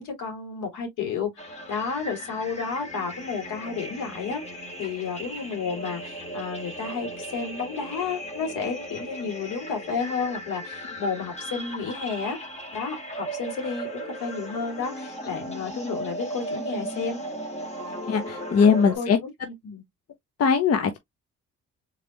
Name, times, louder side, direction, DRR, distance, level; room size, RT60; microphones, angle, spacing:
voice 1, 0.0-4.4 4.8-12.4 12.7-17.2 19.0-19.1 19.4-19.8, left 5 dB, 90° left, 3.0 m, -31 dB
sound 1, 1.4-19.0, right 1 dB, 20° left, 2.0 m, -37 dB
voice 2, 18.1-19.2 20.4-21.0, left 6 dB, 55° left, 0.9 m, -20 dB
4.1 x 3.5 x 3.1 m
cardioid pair, 90°, 30 cm